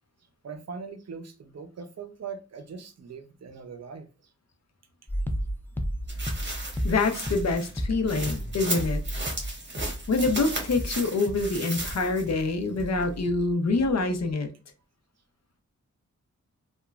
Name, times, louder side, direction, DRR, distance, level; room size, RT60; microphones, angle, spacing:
voice 1, 0.4-4.3 9.4-9.5, right 5 dB, 55° right, 0.6 m, -41 dB
sound 1, 5.1-13.5 13.8-14.3, equal, 5° left, 0.3 m, -34 dB
sound 2, 6.1-12.4 12.8-12.9, right 2 dB, 35° right, 1.1 m, -36 dB
voice 2, 6.8-9.0 10.1-14.5, left 3 dB, 60° left, 0.6 m, -26 dB
2.9 x 2.2 x 2.3 m
wide cardioid pair, 70°, 31 cm